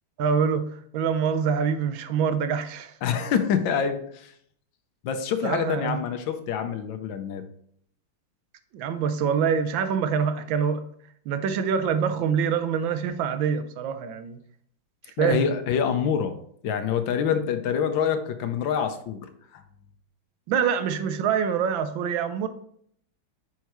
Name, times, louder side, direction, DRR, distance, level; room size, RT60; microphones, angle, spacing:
voice 1, 0.2-0.7 0.9-3.0 5.4-6.0 8.7-10.8 11.3-14.4 15.2-15.4 20.5-22.5, right 7 dB, 80° right, 10 dB, 1.4 m, -25 dB
voice 2, 3.0-4.3 5.0-7.4 15.2-16.3 16.6-19.2 19.5-19.6, left 7 dB, 75° left, 8 dB, 1.4 m, -26 dB
9.3 x 4.6 x 3.0 m, 0.66 s
omnidirectional pair, 2.2 m